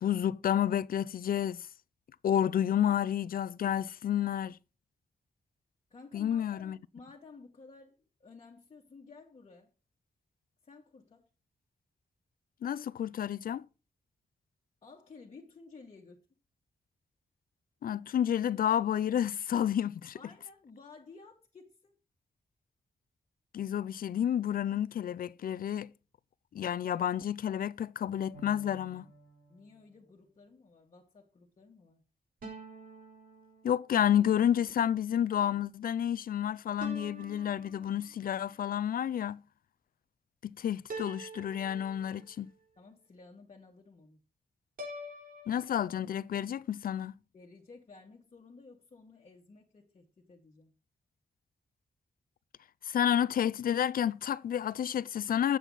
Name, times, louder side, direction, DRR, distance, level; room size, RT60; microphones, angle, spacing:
voice 1, 0.0-1.7 2.2-4.6 6.1-6.8 12.6-13.7 17.8-20.2 23.5-25.9 26.5-29.1 33.6-39.4 40.4-42.5 45.5-47.1 52.8-55.6, left 10 dB, 75° left, 0.4 m, -30 dB
voice 2, 5.9-9.7 10.6-11.3 14.8-16.2 20.1-22.0 29.5-32.0 42.8-44.2 47.3-50.7, left 4 dB, 45° left, 1.7 m, -54 dB
sound 1, 28.3-30.0 32.4-34.1 36.8-38.3 40.9-42.5 44.8-45.7, right 1 dB, 70° right, 3.4 m, -47 dB
9.0 x 7.7 x 4.0 m
wide cardioid pair, 165°, 15 cm